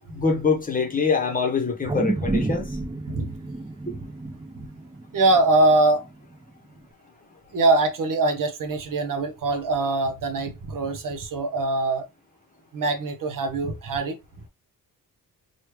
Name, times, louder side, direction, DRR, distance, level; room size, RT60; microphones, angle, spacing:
voice 1, 0.1-2.7 3.9-4.0, left 4 dB, 20° left, 0.9 m, -24 dB
sound 1, 1.8-6.3 6.8-6.9, right 2 dB, 15° right, 0.5 m, -30 dB
voice 2, 5.1-6.0 7.5-12.0 12.7-14.1, right 2 dB, 55° right, 0.8 m, -22 dB
3.1 x 2.3 x 3.1 m
cardioid pair, 80°, 38 cm